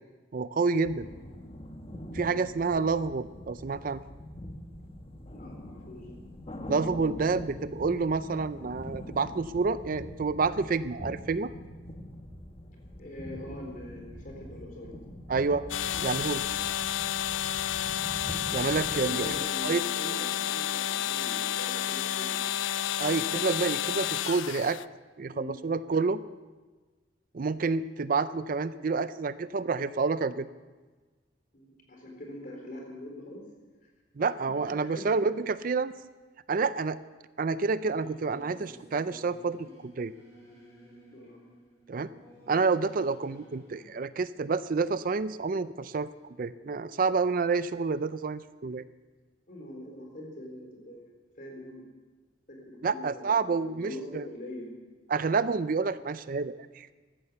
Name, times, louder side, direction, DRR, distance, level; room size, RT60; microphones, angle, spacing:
voice 1, 0.3-1.1 2.1-4.0 6.7-11.5 15.3-15.7 16.0-16.4 18.5-19.3 19.6-19.8 23.0-24.8 25.2-26.2 27.3-30.5 34.2-35.9 36.5-37.0 37.4-40.1 41.9-42.1 42.5-48.8 52.8-54.3 55.1-56.9, right 4 dB, 45° right, 15 dB, 0.4 m, -29 dB
sound 1, 0.8-19.4, equal, 30° left, 1.1 m, -43 dB
voice 2, 5.3-6.2 13.0-14.9 19.0-22.4 25.3-25.6 31.5-33.4 34.3-34.5 34.8-35.1 41.1-41.4 49.5-51.9 52.5-54.8, left 1 dB, 45° left, 1 dB, 4.2 m, -43 dB
sound 2, 15.7-24.8, left 11 dB, 75° left, 0.4 m, -31 dB
Singing / Musical instrument, 37.7-43.9, equal, 15° left, 5.0 m, -54 dB
15.5 x 13.0 x 6.9 m, 1.3 s
head